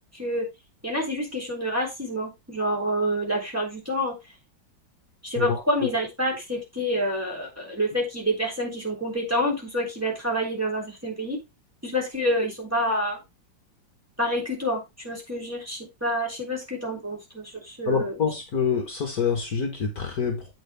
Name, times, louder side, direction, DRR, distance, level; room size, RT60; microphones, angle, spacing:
voice 1, 0.1-0.5 0.8-4.1 5.2-11.4 11.8-13.2 14.2-18.2, equal, 5° right, -2 dB, 3.4 m, -28 dB
voice 2, 17.9-20.5, left 6 dB, 55° left, 3 dB, 1.8 m, -26 dB
8.6 x 6.4 x 3.4 m, 0.22 s
omnidirectional pair, 2.1 m